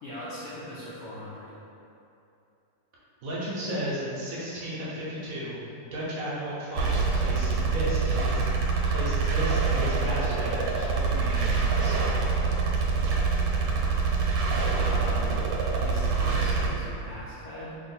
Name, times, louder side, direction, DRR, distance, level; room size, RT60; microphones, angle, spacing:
voice 1, 0.0-1.5 14.7-17.7, left 1 dB, 90° left, -8 dB, 0.7 m, -40 dB
voice 2, 3.2-12.1, equal, 55° right, -8 dB, 1.0 m, -34 dB
sound 1, 6.7-16.7, right 4 dB, 85° right, 1.4 m, -25 dB
3.1 x 2.7 x 4.1 m, 2.7 s
omnidirectional pair, 2.2 m